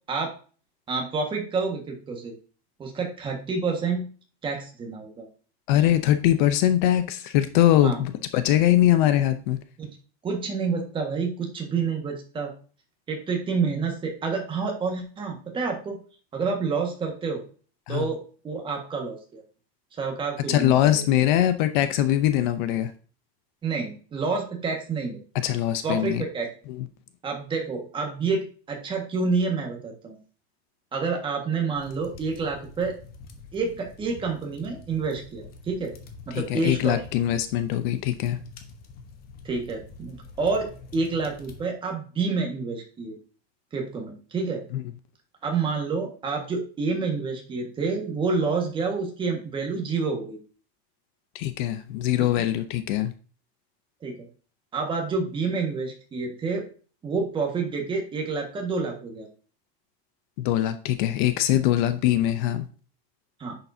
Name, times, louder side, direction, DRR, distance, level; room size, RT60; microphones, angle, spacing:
voice 1, 0.9-2.3 2.8-4.1 4.4-5.3 7.8-8.0 9.8-9.9 10.2-12.5 13.1-16.0 16.3-17.4 17.9-19.4 20.0-21.0 23.6-25.2 25.8-26.5 27.2-30.2 30.9-32.9 33.5-35.9 36.3-37.0 39.4-43.1 43.7-44.6 45.4-50.4 52.2-52.3 54.0-54.3 54.7-56.6 57.0-59.3 63.4-63.6, right 4 dB, 15° right, 2 dB, 1.6 m, -28 dB
voice 2, 5.7-9.6 17.9-18.1 20.5-22.9 25.4-26.2 26.7-26.9 36.3-38.4 44.7-44.8 51.3-53.1 60.4-62.7, left 12 dB, 50° left, 11 dB, 0.7 m, -22 dB
sound 1, 31.7-41.7, left 4 dB, 30° left, 1.0 m, -46 dB
9.9 x 6.9 x 2.7 m, 0.38 s
supercardioid pair, 170°, 32 cm